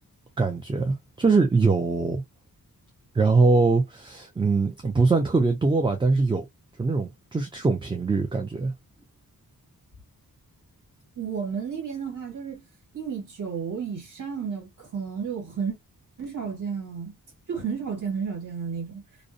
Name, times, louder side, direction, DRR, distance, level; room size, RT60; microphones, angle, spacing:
voice 1, 0.4-2.2 3.1-6.5 6.8-8.7, right 3 dB, 15° right, 0.3 m, -22 dB
voice 2, 11.2-12.6 12.9-15.7 16.2-17.1 17.5-19.0, right 6 dB, 55° right, 1.6 m, -32 dB
2.6 x 2.0 x 2.5 m
wide cardioid pair, 145°, 37 cm